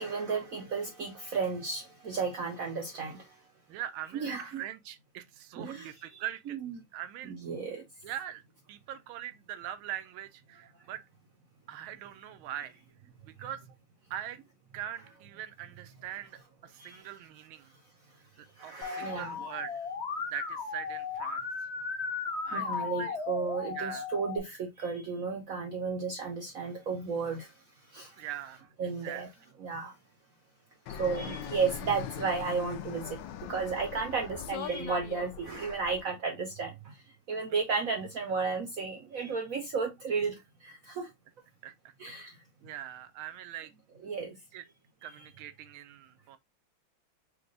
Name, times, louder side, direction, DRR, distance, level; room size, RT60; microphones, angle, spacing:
voice 1, 0.0-3.2 4.2-4.6 5.6-5.9 6.6-6.7 7.2-7.8 16.8-17.0 18.6-19.3 22.5-27.5 27.9-28.1 28.8-29.3 29.6-29.9 30.9-33.2 33.5-36.9 37.3-41.1 42.0-42.3 44.0-44.4, right 5 dB, 65° right, 0.9 m, -33 dB
voice 2, 3.7-6.6 6.9-7.3 8.0-8.4 8.7-11.0 11.7-12.8 13.2-13.7 14.1-14.4 14.7-17.7 18.4-19.9 20.3-21.7 22.1-23.2 23.7-24.1 28.2-28.7 29.0-29.2 41.6-41.9 42.6-43.7 44.5-44.6 45.0-46.4, right 11 dB, 85° right, 1.5 m, -42 dB
Musical instrument, 18.8-24.4, left 5 dB, 55° left, 0.7 m, -36 dB
Fixed-wing aircraft airplane, 30.9-36.0, left 9 dB, 75° left, 1.3 m, -41 dB
4.6 x 2.2 x 3.9 m
omnidirectional pair, 2.2 m